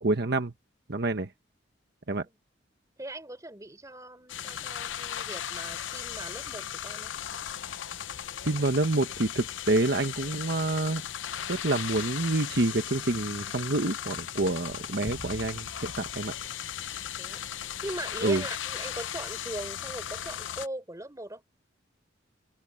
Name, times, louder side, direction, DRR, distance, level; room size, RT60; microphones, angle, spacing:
voice 1, 0.0-0.5 0.9-1.3 2.1-2.2 8.4-11.0 11.5-16.3 18.2-18.4, right 2 dB, 60° right, 1.2 m, -27 dB
voice 2, 3.0-7.1 17.2-21.4, right 1 dB, 15° right, 4.8 m, -40 dB
sound 1, 4.3-20.7, left 10 dB, 90° left, 0.7 m, -37 dB
sound 2, 15.1-17.6, equal, 40° left, 4.4 m, -47 dB
open air
head